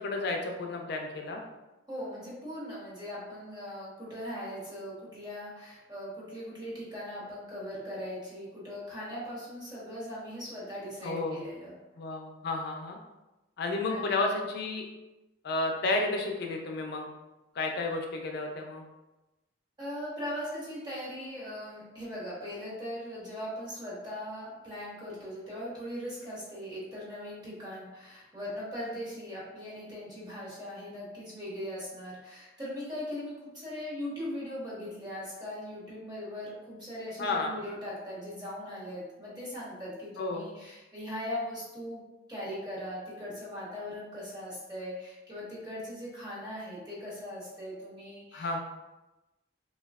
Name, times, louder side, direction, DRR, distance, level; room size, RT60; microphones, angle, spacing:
voice 1, 0.0-1.4 11.0-11.4 12.0-13.0 13.6-14.8 15.4-17.1 17.5-18.8 37.2-37.5 40.2-40.5 48.3-48.6, left 2 dB, 60° left, 2 dB, 0.4 m, -31 dB
voice 2, 1.9-11.7 13.9-14.0 19.8-42.0 42.3-48.6, equal, 25° right, -7 dB, 1.0 m, -39 dB
3.0 x 2.3 x 2.3 m, 1.0 s
head